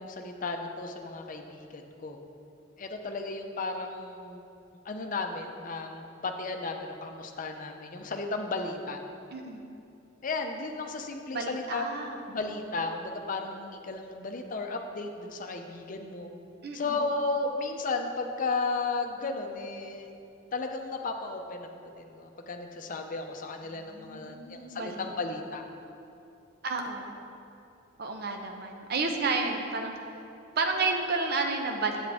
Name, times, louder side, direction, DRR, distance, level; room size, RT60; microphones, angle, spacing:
voice 1, 0.0-2.2 2.8-4.4 4.8-9.0 10.2-11.8 12.3-16.3 16.7-20.1 20.5-21.7 22.0-25.6, left 3 dB, 45° left, 4 dB, 0.6 m, -34 dB
voice 2, 9.3-9.6 11.3-12.2 16.6-17.0 23.7-25.1 26.6-27.1 28.0-29.9 30.6-32.1, right 3 dB, 55° right, 3 dB, 0.7 m, -31 dB
7.9 x 7.4 x 3.5 m, 2.7 s
head